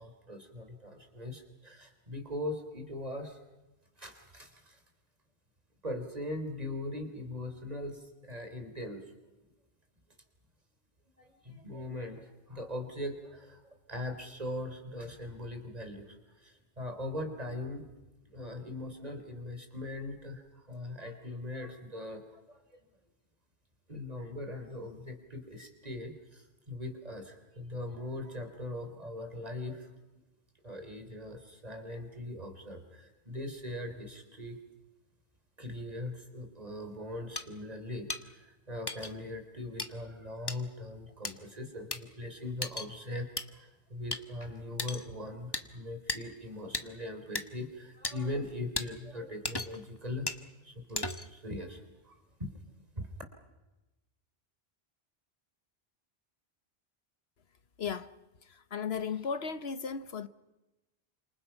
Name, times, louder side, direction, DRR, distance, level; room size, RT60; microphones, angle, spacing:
voice 1, 0.0-3.4 4.0-4.8 5.8-9.1 11.2-13.6 13.9-17.9 18.3-22.6 23.9-30.2 30.6-34.6 35.6-50.3 50.6-52.5 53.0-53.1, left 1 dB, 40° right, 3.7 m, -40 dB
sound 1, 37.4-37.5 38.1-38.2 38.9-39.1 39.8-39.9 40.5-40.6 41.2-41.3 41.9-42.0 42.6-42.9 43.4-43.5 44.1-44.2 44.8-45.1 45.5-45.7 46.1-46.2 46.7-46.9 47.4-47.5 48.0-48.1 48.8-48.9 49.4-49.8 50.3-50.4 51.0-51.4, left 2 dB, 25° left, 1.3 m, -35 dB
voice 2, 57.8-58.1 58.5-60.3, left 6 dB, 75° left, 1.3 m, -35 dB
29.5 x 27.0 x 5.8 m
omnidirectional pair, 1.1 m